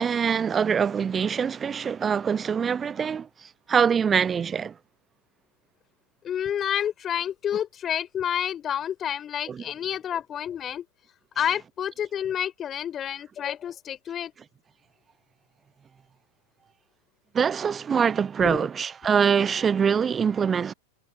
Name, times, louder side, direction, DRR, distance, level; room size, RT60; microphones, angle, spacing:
voice 1, 0.0-4.7 9.5-9.6 17.3-20.7, right 7 dB, 20° right, 0.8 m, -24 dB
voice 2, 6.2-10.8 11.4-14.3 18.4-18.7, left 9 dB, 25° left, 3.8 m, -29 dB
figure-of-eight pair, 90°, 0 cm